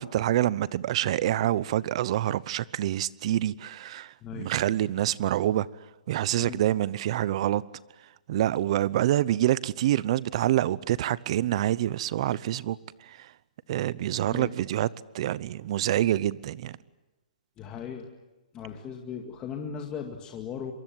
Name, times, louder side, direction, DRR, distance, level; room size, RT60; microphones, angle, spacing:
voice 1, 0.0-5.7 6.1-7.6 8.3-13.3 13.7-14.9 15.1-16.8, right 13 dB, 45° right, 0.8 m, -26 dB
voice 2, 4.2-4.5 6.4-6.6 14.3-14.5 17.6-18.1 18.5-20.7, left 7 dB, 20° left, 2.2 m, -37 dB
27.5 x 23.5 x 7.8 m
hypercardioid pair, 160°, 4 cm